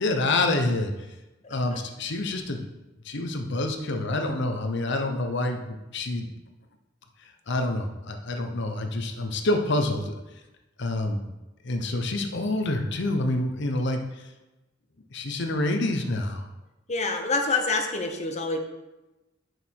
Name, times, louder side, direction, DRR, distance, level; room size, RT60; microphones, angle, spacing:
voice 1, 0.0-0.9 1.5-2.6 3.0-6.3 7.5-10.1 10.8-11.2 11.6-14.2 15.1-16.5, left 2 dB, 65° left, 5 dB, 0.9 m, -27 dB
voice 2, 16.9-18.6, left 3 dB, 35° left, 4 dB, 0.9 m, -26 dB
6.8 x 6.2 x 4.6 m, 1.0 s
head